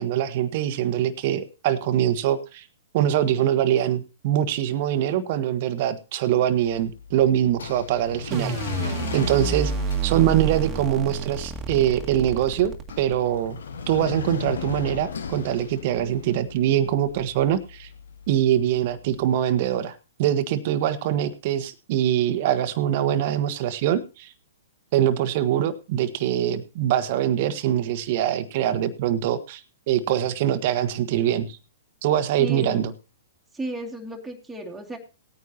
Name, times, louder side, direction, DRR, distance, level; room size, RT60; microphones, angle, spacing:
voice 1, 0.0-2.6 2.9-8.6 8.8-9.7 10.0-13.6 13.9-17.9 18.3-19.9 20.2-24.3 24.9-29.6 29.9-31.6 32.0-32.9, right 11 dB, 50° right, 10 dB, 1.3 m, -23 dB
sound 1, 6.5-19.6, left 5 dB, 75° left, 1.4 m, -37 dB
sound 2, 8.3-13.4, right 5 dB, 25° right, 1.9 m, -30 dB
voice 2, 32.4-32.8 33.5-35.0, right 1 dB, 5° right, -2 dB, 2.5 m, -33 dB
18.5 x 9.5 x 2.8 m, 0.30 s
hypercardioid pair, 120°, 0 cm